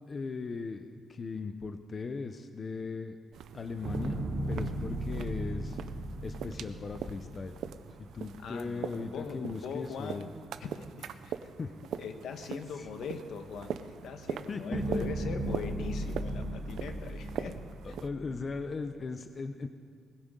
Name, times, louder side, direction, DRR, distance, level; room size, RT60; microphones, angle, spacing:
voice 1, 0.1-3.2 3.5-5.8 6.2-7.6 8.0-10.3 11.6-11.8 12.8-12.9 14.5-15.1 17.8-19.7, left 4 dB, 30° left, 8 dB, 0.5 m, -38 dB
sound 1, 3.3-18.1, right 8 dB, 75° right, 0.5 m, -43 dB
sound 2, 3.8-8.1 14.7-18.5, right 1 dB, 55° right, 2.2 m, -36 dB
voice 2, 8.4-10.3 10.6-11.3 12.0-17.5 17.9-18.0, left 6 dB, 65° left, 7 dB, 1.1 m, -41 dB
20.5 x 15.5 x 3.7 m, 2.2 s
cardioid pair, 165°, 0 cm